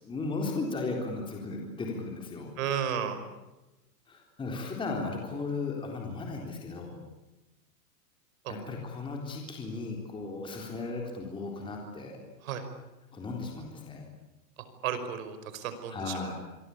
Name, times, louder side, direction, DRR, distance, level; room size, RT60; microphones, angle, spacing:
voice 1, 0.0-2.5 4.1-7.0 8.5-12.2 13.1-14.1 15.9-16.3, left 3 dB, 10° left, 1 dB, 3.8 m, -36 dB
voice 2, 2.6-3.2 8.4-8.5 12.4-12.6 14.6-16.3, right 8 dB, 55° right, 9 dB, 5.4 m, -33 dB
27.5 x 23.0 x 8.6 m, 1.0 s
supercardioid pair, 165°, 50 cm